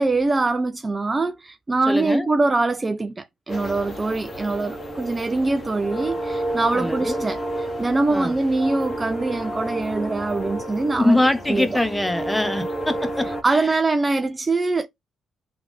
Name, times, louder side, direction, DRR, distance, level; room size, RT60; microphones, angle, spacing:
voice 1, 0.0-11.2 11.5-11.7 13.3-14.9, right 3 dB, 25° right, 0.5 m, -23 dB
voice 2, 1.9-2.3 6.7-7.3 8.1-8.3 11.0-13.6, left 1 dB, 10° left, 0.9 m, -23 dB
sound 1, 3.5-13.4, right 1 dB, 30° left, 1.6 m, -30 dB
3.4 x 3.4 x 3.5 m
cardioid pair, 90°, 0 cm